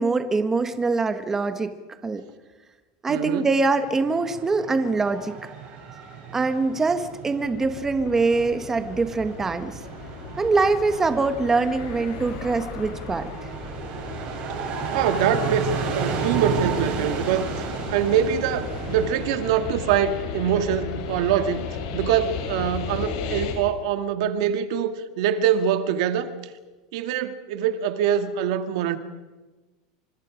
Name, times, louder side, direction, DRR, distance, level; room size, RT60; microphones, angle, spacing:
voice 1, 0.0-1.7 2.0-2.2 3.0-5.4 6.3-9.8 10.4-13.5, right 3 dB, 15° right, 1.4 m, -23 dB
voice 2, 3.1-3.5 14.9-21.7 21.9-26.4 26.9-29.0, right 8 dB, 65° right, 2.0 m, -24 dB
sound 1, 3.8-23.4, right 5 dB, 40° right, 7.8 m, -34 dB
sound 2, 7.4-23.5, left 6 dB, 70° left, 7.8 m, -36 dB
29.0 x 26.0 x 5.2 m
supercardioid pair, 160°, 3 cm